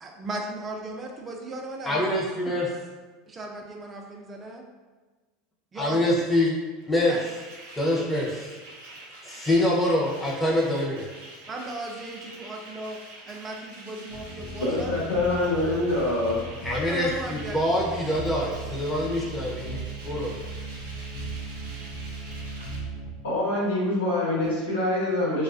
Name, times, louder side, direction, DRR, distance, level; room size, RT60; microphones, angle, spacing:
voice 1, 0.0-2.1 3.3-4.6 5.7-6.0 7.1-7.2 7.9-8.1 11.5-13.0 13.2-14.9 16.9-17.6, right 2 dB, 30° right, 1 dB, 0.5 m, -37 dB
voice 2, 1.9-2.7 5.8-6.5 6.8-7.1 7.8-8.3 9.2-11.1 16.6-20.3, left 1 dB, 10° left, -4 dB, 0.7 m, -25 dB
sound 1, 6.8-22.8, right 2 dB, 75° right, 0.7 m, -46 dB
sound 2, 14.1-23.1, right 2 dB, 70° left, 0.5 m, -37 dB
voice 3, 14.6-16.4 23.2-25.4, left 2 dB, 90° left, -8 dB, 1.1 m, -25 dB
2.3 x 2.3 x 2.5 m, 1.3 s
hypercardioid pair, 85°, 0 cm